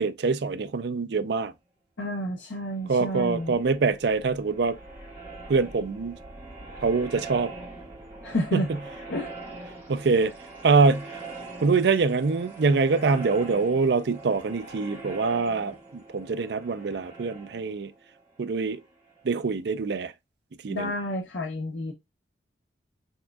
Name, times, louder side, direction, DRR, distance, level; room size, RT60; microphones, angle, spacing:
voice 1, 0.0-1.5 2.9-4.8 5.5-6.2 6.8-7.5 8.5-8.8 9.9-10.3 10.6-11.1 11.6-15.7 16.1-17.9 18.4-18.8 19.2-20.1 20.6-20.9, right 4 dB, 65° right, 0.4 m, -24 dB
voice 2, 2.0-3.6 8.2-8.7 9.1-9.3 20.7-21.9, equal, 80° left, 0.8 m, -30 dB
sound 1, 2.7-19.3, right 3 dB, 10° right, 2.0 m, -43 dB
4.2 x 3.5 x 2.3 m
head